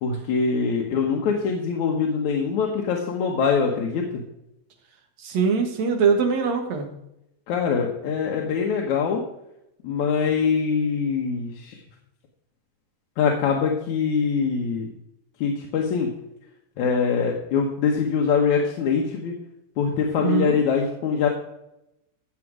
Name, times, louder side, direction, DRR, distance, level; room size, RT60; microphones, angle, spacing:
voice 1, 0.0-4.2 7.5-9.2 9.8-11.8 13.2-14.9 15.4-16.1 16.8-19.3 19.8-21.3, left 6 dB, 70° left, 0 dB, 2.5 m, -23 dB
voice 2, 5.2-6.9 20.2-20.6, right 5 dB, 65° right, 3 dB, 2.7 m, -22 dB
13.5 x 7.8 x 4.9 m, 0.83 s
omnidirectional pair, 3.5 m